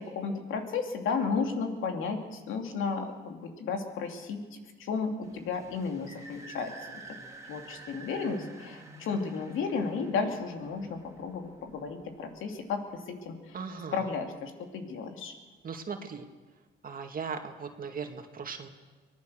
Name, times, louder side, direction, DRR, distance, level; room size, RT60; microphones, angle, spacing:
voice 1, 0.0-7.2 7.5-13.6 13.9-15.3, left 5 dB, 85° left, 4 dB, 2.9 m, -33 dB
sound 1, 5.2-12.6, right 2 dB, 15° right, 3.1 m, -49 dB
voice 2, 13.5-14.1 15.6-16.3 16.8-18.7, right 5 dB, 45° right, 4 dB, 2.2 m, -38 dB
24.0 x 18.5 x 6.6 m, 1.3 s
cardioid pair, 90°, 20 cm